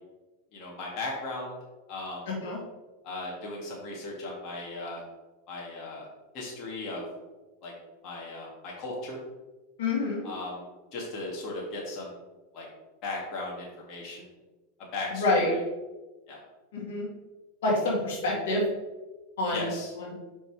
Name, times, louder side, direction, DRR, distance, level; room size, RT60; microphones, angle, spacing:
voice 1, 0.5-1.6 1.9-2.3 3.0-5.0 5.5-6.1 6.3-7.0 7.6-7.7 8.0-9.2 10.2-10.6 10.9-12.1 12.5-12.7 13.0-14.3 14.9-15.6 16.3-16.4 19.5-19.9, left 2 dB, 50° left, -3 dB, 2.0 m, -37 dB
voice 2, 2.3-2.6 9.8-10.2 15.1-15.5 16.7-17.1 17.6-18.6 19.4-19.7 20.0-20.1, left 2 dB, 75° left, -3 dB, 2.1 m, -27 dB
5.3 x 4.4 x 4.6 m, 1.2 s
hypercardioid pair, 110°, 0 cm